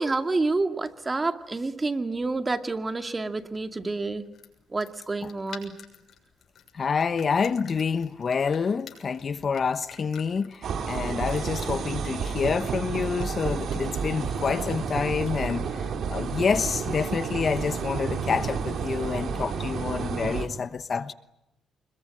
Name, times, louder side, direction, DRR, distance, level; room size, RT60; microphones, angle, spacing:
voice 1, 0.0-4.2 4.7-5.7, right 3 dB, 25° right, 2.1 m, -28 dB
sound 1, 2.0-16.9, left 7 dB, 60° left, 6.8 m, -52 dB
voice 2, 6.7-21.1, left 5 dB, 45° left, 1.1 m, -28 dB
sound 2, 10.6-20.5, right 6 dB, 65° right, 3.0 m, -31 dB
26.0 x 22.0 x 9.9 m
cardioid pair, 90°, 0 cm